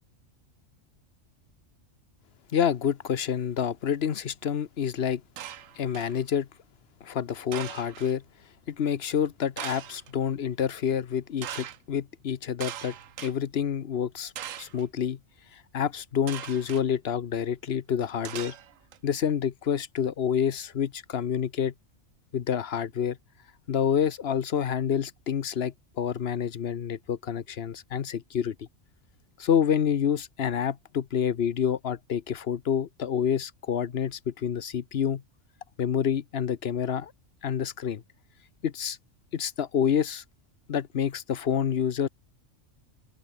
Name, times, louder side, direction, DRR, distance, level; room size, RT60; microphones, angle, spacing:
voice 1, 2.5-5.2 5.8-6.5 7.0-8.2 8.7-12.9 13.2-14.3 14.6-15.2 15.7-18.5 19.0-21.7 22.3-23.2 23.7-28.5 29.4-35.2 35.8-37.1 37.4-38.0 38.6-39.0 39.3-40.2 40.7-42.1, left 8 dB, 55° left, 1.1 m, -28 dB
sound 1, 5.4-6.2 7.5-8.1 9.6-10.1 11.4-11.8 12.6-13.3 14.4-14.8 16.3-16.8 18.2-19.0, right 10 dB, 80° right, 1.2 m, -39 dB
open air
omnidirectional pair, 1.3 m